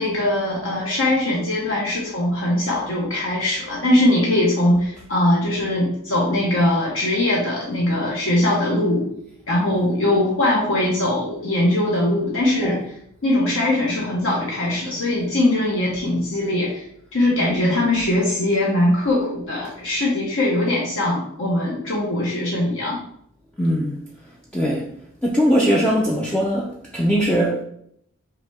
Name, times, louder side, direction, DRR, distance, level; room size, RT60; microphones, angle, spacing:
voice 1, 0.0-9.1 9.5-12.8 13.2-16.8 17.1-23.0, left 1 dB, 60° left, -4 dB, 0.9 m, -21 dB
voice 2, 17.4-17.8 23.6-24.0 24.5-24.9 25.2-27.6, equal, 5° left, -4 dB, 0.4 m, -21 dB
5.6 x 2.2 x 3.4 m, 0.69 s
head